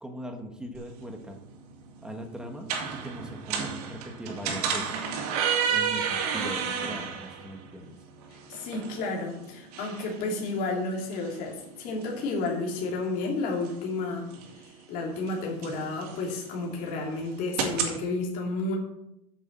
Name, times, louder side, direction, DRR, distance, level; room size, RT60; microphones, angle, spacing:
voice 1, 0.0-1.4 2.0-5.2 5.7-7.9, right 1 dB, 5° right, 4 dB, 1.4 m, -40 dB
sound 1, 0.7-18.0, right 7 dB, 75° right, 2.8 m, -34 dB
voice 2, 8.5-14.2 14.6-18.8, left 3 dB, 45° left, -1 dB, 3.1 m, -31 dB
8.4 x 7.3 x 7.4 m, 0.81 s
supercardioid pair, 160°, 20 cm